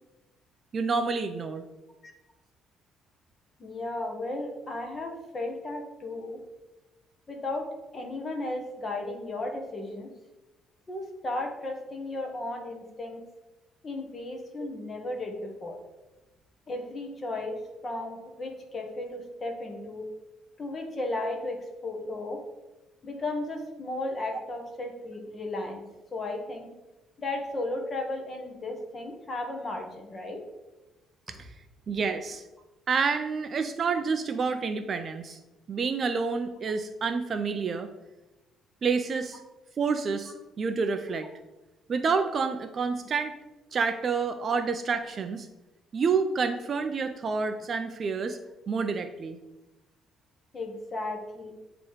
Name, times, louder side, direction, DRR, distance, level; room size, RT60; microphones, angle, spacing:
voice 1, 0.7-1.6 14.6-14.7 31.3-31.5 31.9-32.4 32.9-35.4 35.7-37.9 38.8-39.4 39.8-41.3 41.9-43.4 43.7-45.5 45.9-48.4 48.7-49.4, right 5 dB, 35° right, 8 dB, 0.3 m, -28 dB
voice 2, 3.6-6.4 7.3-7.7 7.9-10.1 10.9-13.2 13.8-15.8 16.7-17.5 17.8-20.1 20.6-22.4 23.0-25.8 26.1-26.7 27.2-30.4 50.5-51.5, left 2 dB, 25° left, 3 dB, 1.1 m, -35 dB
8.7 x 2.9 x 4.7 m, 1.0 s
cardioid pair, 155°, 0 cm